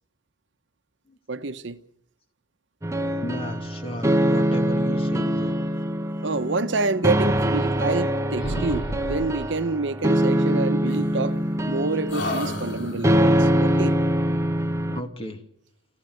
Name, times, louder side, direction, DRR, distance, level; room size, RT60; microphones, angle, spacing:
voice 1, 1.3-1.8 6.2-11.4 11.7-14.0, right 3 dB, 65° right, 0.9 m, -27 dB
sound 1, 2.8-15.0, equal, 15° right, 1.0 m, -24 dB
voice 2, 3.2-5.6 14.9-15.4, equal, 30° left, 2.3 m, -34 dB
sound 2, 7.2-8.1 8.4-9.5 10.9-11.7 12.1-13.3, left 1 dB, 65° left, 3.8 m, -33 dB
27.5 x 14.5 x 7.8 m
head